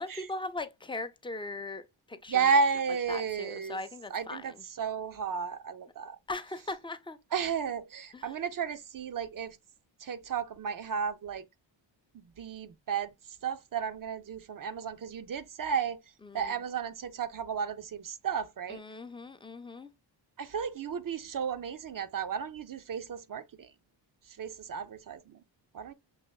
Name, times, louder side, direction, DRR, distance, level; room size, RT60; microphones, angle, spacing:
voice 1, 0.0-2.5 3.1-4.6 6.3-7.2 8.1-8.4 16.2-16.5 18.7-19.9, left 2 dB, 10° left, 0.4 m, -39 dB
voice 2, 2.3-3.8 4.1-6.2 7.3-9.6 10.0-11.4 12.2-16.0 16.3-18.8 20.4-23.7 24.3-25.4 25.7-25.9, right 6 dB, 45° right, 0.5 m, -33 dB
6.3 x 2.9 x 2.3 m
wide cardioid pair, 105°, 47 cm